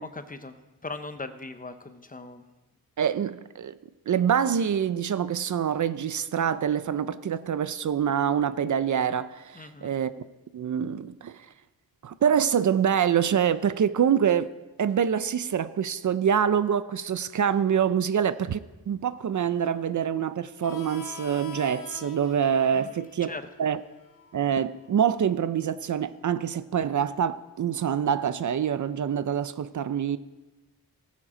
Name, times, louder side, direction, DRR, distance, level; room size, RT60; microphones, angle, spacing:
voice 1, 0.0-2.5 9.5-9.9 22.7-23.5, left 3 dB, 25° left, 0.7 m, -40 dB
voice 2, 3.0-3.8 4.1-10.1 10.5-11.5 12.0-14.5 14.8-23.3 23.6-23.8 24.3-30.2, right 8 dB, 55° right, 0.5 m, -25 dB
Harmonica, 20.6-25.9, left 5 dB, 60° left, 1.3 m, -46 dB
17.0 x 7.4 x 5.0 m
wide cardioid pair, 135°, 37 cm